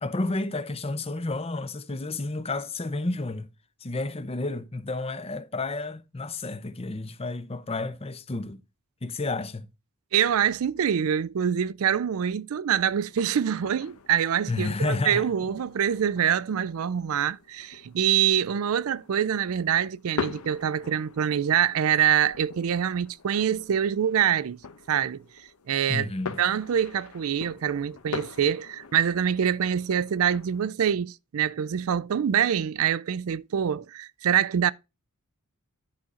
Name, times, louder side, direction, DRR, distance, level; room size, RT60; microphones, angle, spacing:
voice 1, 0.0-3.5 3.8-8.6 9.0-9.7 14.5-15.2 25.9-26.4, left 2 dB, 25° left, 0.7 m, -31 dB
voice 2, 10.1-24.6 24.9-25.2 25.7-26.1 26.4-34.7, right 9 dB, 65° right, 0.4 m, -25 dB
sound 1, 12.7-30.7, left 5 dB, 80° left, 0.9 m, -43 dB
10.5 x 4.2 x 4.9 m
head